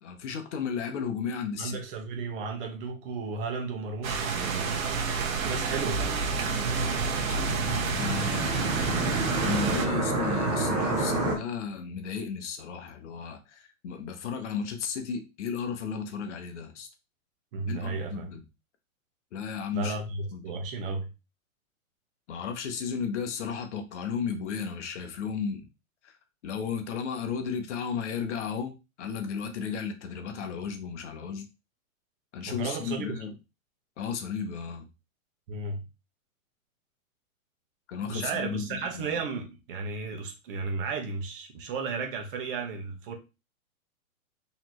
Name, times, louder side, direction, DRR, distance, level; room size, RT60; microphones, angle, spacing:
voice 1, 0.0-1.8 7.3-7.4 8.0-16.9 17.7-18.4 19.3-19.9 20.3-20.4 22.3-25.7 26.0-26.1 26.4-31.5 32.3-33.3 34.0-34.9 37.9-39.2, left 6 dB, 55° left, 0.9 m, -34 dB
voice 2, 1.6-4.8 5.4-6.2 17.5-18.3 19.7-21.1 32.5-33.2 35.5-35.8 38.1-43.2, right 4 dB, 40° right, 1.1 m, -34 dB
sound 1, 4.0-9.9, right 4 dB, 70° right, 1.2 m, -29 dB
sound 2, 6.2-11.4, right 3 dB, 10° right, 0.4 m, -29 dB
4.2 x 3.1 x 3.0 m
hypercardioid pair, 145°, 42 cm